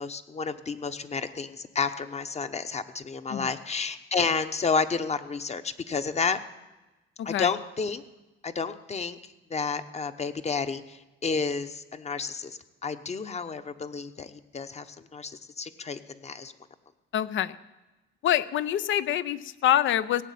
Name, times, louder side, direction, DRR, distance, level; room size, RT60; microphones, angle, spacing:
voice 1, 0.0-6.4 7.2-8.0 8.4-9.2 9.5-16.5, left 5 dB, 35° left, 11 dB, 0.9 m, -31 dB
voice 2, 7.2-7.5 17.1-17.5 18.2-20.2, left 11 dB, 75° left, 16 dB, 0.7 m, -25 dB
17.0 x 7.3 x 8.5 m, 1.1 s
cardioid pair, 90°, 20 cm